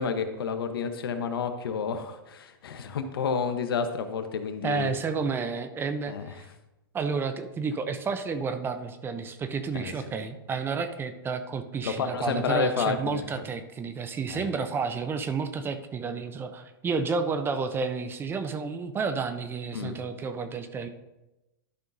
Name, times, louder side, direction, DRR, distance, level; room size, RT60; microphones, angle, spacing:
voice 1, 0.0-4.9 6.1-6.3 9.7-9.9 11.8-13.2 14.3-14.5 19.7-20.0, left 6 dB, 80° left, 8 dB, 0.9 m, -30 dB
voice 2, 4.6-6.5 6.9-20.9, right 5 dB, 20° right, 10 dB, 0.6 m, -31 dB
12.0 x 5.5 x 2.6 m, 0.99 s
hypercardioid pair, 125°, 12 cm